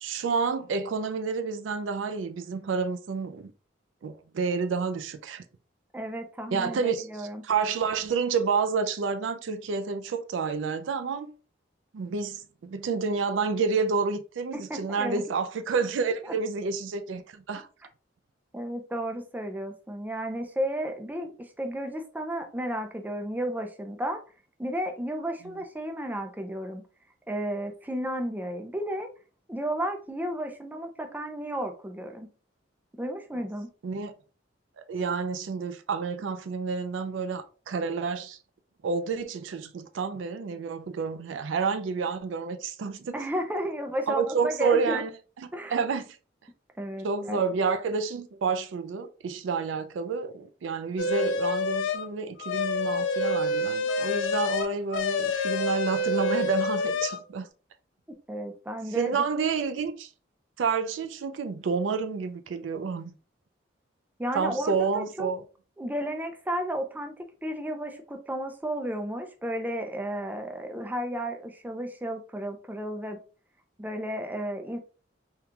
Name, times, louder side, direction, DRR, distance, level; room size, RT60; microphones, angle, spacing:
voice 1, 0.0-3.5 4.0-5.4 6.5-11.3 11.9-17.7 25.4-25.6 33.8-34.1 34.8-38.4 38.8-43.1 44.1-45.1 45.4-46.2 47.0-57.5 58.9-60.1 60.6-63.1 64.3-65.4, right 5 dB, 80° right, 0.4 m, -29 dB
voice 2, 5.9-7.4 14.5-15.2 16.2-16.3 18.5-24.2 24.6-26.8 27.3-29.1 29.5-32.3 33.0-33.7 43.1-45.0 45.5-45.8 46.8-47.4 58.3-59.2 64.2-65.3 65.8-67.1 67.4-73.2 73.8-74.8, equal, 10° right, 0.4 m, -33 dB
sound 1, 51.0-52.1 52.4-57.2, left 2 dB, 80° left, 0.4 m, -27 dB
3.6 x 2.3 x 2.8 m
head